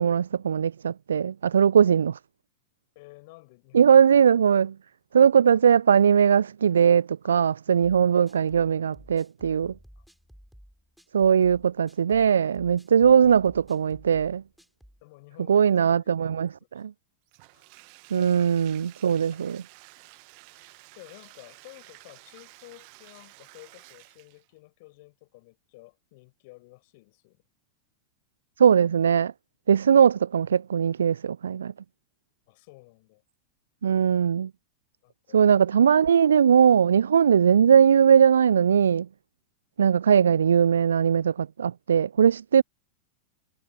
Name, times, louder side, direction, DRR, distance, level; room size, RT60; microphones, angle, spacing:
voice 1, 0.0-2.2 3.7-4.7 5.1-9.7 11.1-14.4 15.5-16.5 16.8-16.9 18.1-19.6 28.6-29.3 29.7-31.7 33.8-34.5 35.3-39.1 39.8-42.6, right 7 dB, 70° right, 0.3 m, -20 dB
voice 2, 2.9-3.9 7.2-7.4 10.0-10.1 15.0-16.8 17.5-17.7 19.3-19.6 20.5-27.4 32.5-33.2 35.0-35.4, left 24 dB, 50° left, 6.8 m, -52 dB
sound 1, 8.3-15.0, equal, ahead, 3.9 m, -53 dB
Bathtub (filling or washing), 17.3-24.5, right 40 dB or more, 45° right, 1.4 m, -52 dB
figure-of-eight pair, 90°, 0 cm